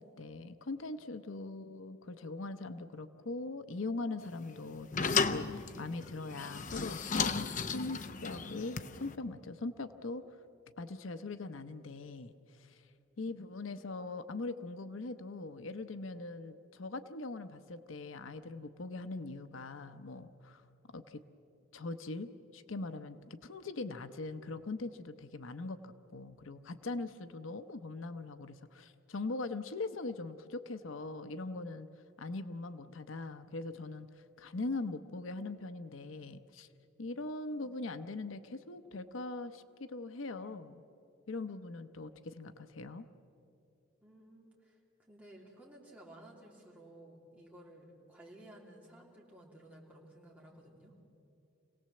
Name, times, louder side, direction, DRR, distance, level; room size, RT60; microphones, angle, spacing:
voice 1, 0.0-10.4 10.8-12.8 13.2-20.6 20.9-21.2 21.7-31.9 32.2-34.1 34.4-36.7 37.0-40.8 41.3-43.1, left 3 dB, 85° left, 11 dB, 0.8 m, -41 dB
sound 1, 4.2-9.2, left 5 dB, 40° left, 0.7 m, -34 dB
voice 2, 44.0-44.8 45.1-50.9, right 1 dB, 10° right, -3 dB, 3.3 m, -56 dB
26.0 x 18.0 x 7.7 m, 2.7 s
head